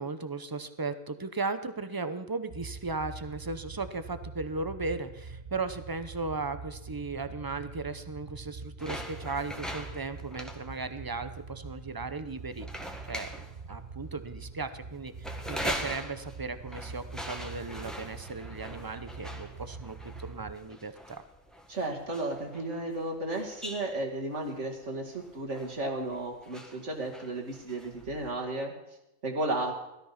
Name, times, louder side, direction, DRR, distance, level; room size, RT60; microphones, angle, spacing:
voice 1, 0.0-12.7 13.1-21.3, right 3 dB, 25° right, 11 dB, 0.6 m, -36 dB
sound 1, 2.5-20.5, right 4 dB, 45° right, 0.9 m, -44 dB
sound 2, 8.8-28.3, equal, ahead, 1.5 m, -43 dB
voice 2, 21.7-28.7 29.2-29.7, right 2 dB, 60° right, 2 dB, 2.5 m, -33 dB
16.5 x 13.0 x 5.9 m, 0.90 s
omnidirectional pair, 1.4 m